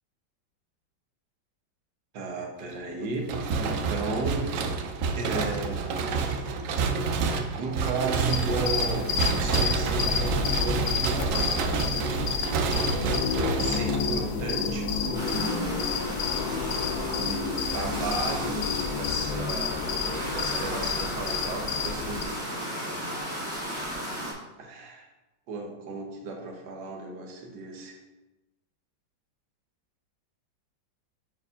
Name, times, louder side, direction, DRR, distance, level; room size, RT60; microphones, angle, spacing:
voice 1, 2.1-4.5 5.2-6.4 7.6-12.5 13.6-16.1 17.1-19.9 20.3-22.3 24.6-25.1 25.5-28.0, right 3 dB, 70° right, 2 dB, 1.4 m, -34 dB
sound 1, 3.3-14.5, right 5 dB, 90° right, 0.7 m, -28 dB
sound 2, 8.3-22.2, left 6 dB, 70° left, 0.9 m, -30 dB
sound 3, 15.1-24.3, equal, 35° right, 2.1 m, -34 dB
9.2 x 4.6 x 2.4 m, 1.1 s
omnidirectional pair, 2.0 m